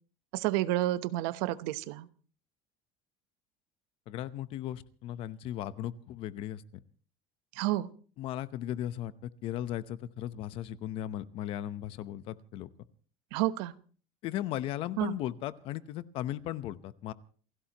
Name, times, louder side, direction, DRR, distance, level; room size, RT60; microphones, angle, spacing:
voice 1, 0.3-2.1 7.5-7.9 13.3-13.7 15.0-15.2, right 16 dB, 75° right, 14 dB, 1.0 m, -30 dB
voice 2, 4.1-6.6 8.2-12.7 14.2-17.1, left 12 dB, 45° left, 15 dB, 0.9 m, -37 dB
28.5 x 16.0 x 3.0 m, 0.41 s
cardioid pair, 170°, 13 cm